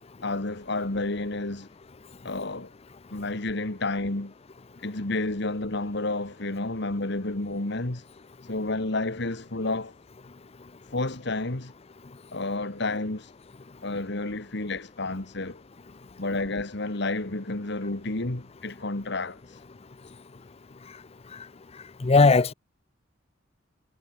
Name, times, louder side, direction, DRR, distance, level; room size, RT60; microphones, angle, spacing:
voice 1, 0.2-1.7 2.2-2.7 3.1-4.3 4.8-8.0 8.5-9.9 10.9-11.7 12.3-13.3 13.8-15.6 16.2-19.4, left 2 dB, 65° left, 1.9 m, -30 dB
voice 2, 22.0-22.5, left 3 dB, 30° left, 0.6 m, -17 dB
head